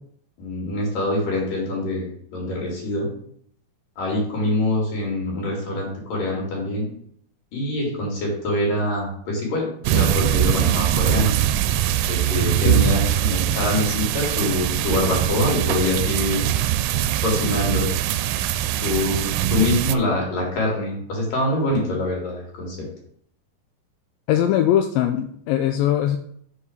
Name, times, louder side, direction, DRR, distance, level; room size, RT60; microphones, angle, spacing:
voice 1, 0.4-3.1 4.0-6.9 7.5-11.4 12.0-16.5 17.2-17.9 18.8-22.8, left 2 dB, 70° left, -2 dB, 4.5 m, -25 dB
sound 1, 9.8-20.0, right 12 dB, 90° right, 2.3 m, -22 dB
voice 2, 12.6-13.0 24.3-26.2, left 11 dB, 90° left, 6 dB, 2.3 m, -21 dB
7.0 x 5.6 x 6.4 m, 0.66 s
omnidirectional pair, 4.0 m